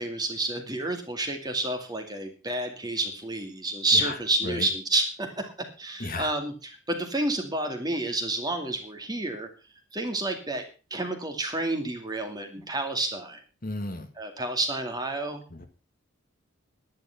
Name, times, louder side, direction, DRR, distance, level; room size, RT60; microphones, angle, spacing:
voice 1, 0.0-6.5 6.9-9.5 9.9-10.6 10.9-13.4 14.2-15.4, right 2 dB, 20° right, 5 dB, 2.3 m, -29 dB
voice 2, 6.0-6.3 12.6-12.7 13.6-14.1 15.5-15.7, left 2 dB, 40° left, 7 dB, 1.6 m, -34 dB
11.0 x 10.5 x 5.9 m, 0.34 s
head